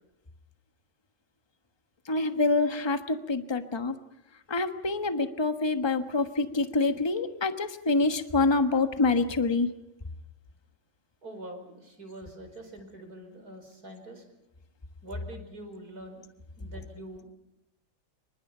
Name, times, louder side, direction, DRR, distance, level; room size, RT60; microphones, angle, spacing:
voice 1, 2.1-4.0 4.5-9.7, left 3 dB, 15° left, 8 dB, 1.1 m, -26 dB
voice 2, 11.2-14.2 15.0-16.2 16.6-17.3, right 1 dB, 50° right, 5 dB, 5.3 m, -44 dB
27.0 x 24.5 x 5.7 m, 0.88 s
omnidirectional pair, 2.0 m